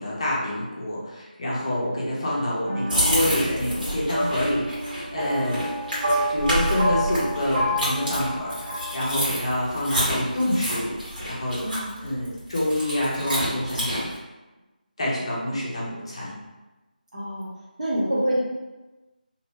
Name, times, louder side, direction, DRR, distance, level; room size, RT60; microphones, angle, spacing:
voice 1, 0.0-5.7 6.0-11.6 12.0-14.2 15.0-16.4, left 1 dB, 35° left, -6 dB, 0.6 m, -27 dB
sound 1, 2.6-9.6, equal, 20° right, 0.7 m, -29 dB
sound 2, 2.9-14.2, equal, 65° right, 1.4 m, -29 dB
voice 2, 11.6-12.0 17.1-17.5 17.8-18.4, right 1 dB, 50° right, -7 dB, 0.9 m, -26 dB
2.6 x 2.0 x 3.0 m, 1.1 s
figure-of-eight pair, 165°, 5 cm